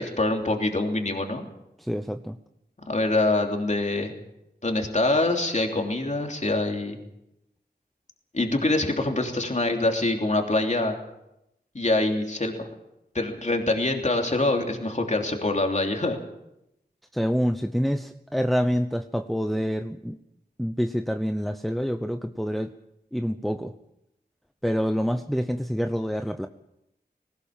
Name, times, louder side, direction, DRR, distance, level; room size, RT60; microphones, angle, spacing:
voice 1, 0.0-1.4 2.9-4.1 4.6-7.0 8.3-10.9 11.7-12.6 13.1-16.2, left 2 dB, 45° left, 2 dB, 3.1 m, -25 dB
voice 2, 1.8-2.4 17.1-20.2 20.6-22.7 23.1-23.7 24.6-26.5, equal, ahead, 7 dB, 0.8 m, -27 dB
19.5 x 18.0 x 7.4 m, 0.85 s
wide cardioid pair, 65°, 17 cm